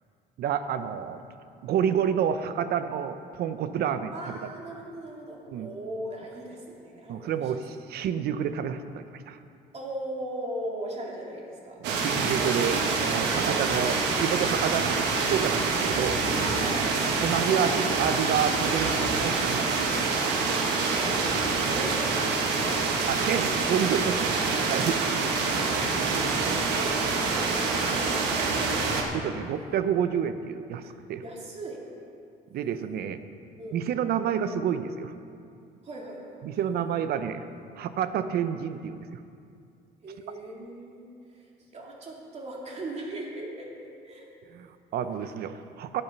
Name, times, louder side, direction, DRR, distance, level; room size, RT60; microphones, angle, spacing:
voice 1, 0.4-1.2 1.6-4.1 4.4-4.5 5.5-5.7 7.1-9.4 11.8-16.2 17.2-19.8 21.6-21.7 23.1-25.1 27.9-28.0 29.1-30.8 31.1-31.2 32.5-33.2 33.7-35.1 36.4-37.4 37.8-39.2 44.5-46.0, right 8 dB, 70° right, 10 dB, 0.7 m, -29 dB
voice 2, 4.1-7.5 9.7-11.8 16.4-17.4 20.5-23.1 25.0-25.6 26.6-29.2 30.8-30.9 31.2-31.8 33.6-33.8 35.8-36.5 40.0-41.5 41.7-43.7 44.0-44.3, right 1 dB, 40° right, -3 dB, 2.8 m, -39 dB
sound 1, 11.8-29.0, right 4 dB, 85° right, 1.4 m, -26 dB
10.5 x 9.0 x 5.9 m, 2.4 s
cardioid pair, 110°, 17 cm